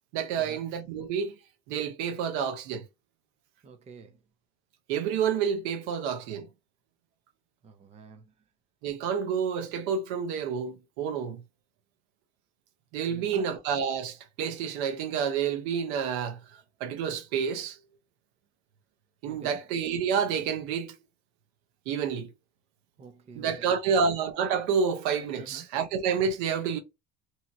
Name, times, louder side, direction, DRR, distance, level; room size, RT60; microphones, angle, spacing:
voice 1, 0.1-1.4 1.7-2.8 4.9-6.5 8.8-11.4 12.9-16.4 16.8-17.8 19.2-21.0 21.9-22.3 23.4-26.8, right 6 dB, 85° right, 0.9 m, -29 dB
voice 2, 3.6-4.2 7.6-8.3 13.1-13.6 19.3-19.6 23.0-24.1 25.4-25.7, right 5 dB, 20° right, 0.5 m, -48 dB
2.8 x 2.8 x 2.3 m
cardioid pair, 140°, 31 cm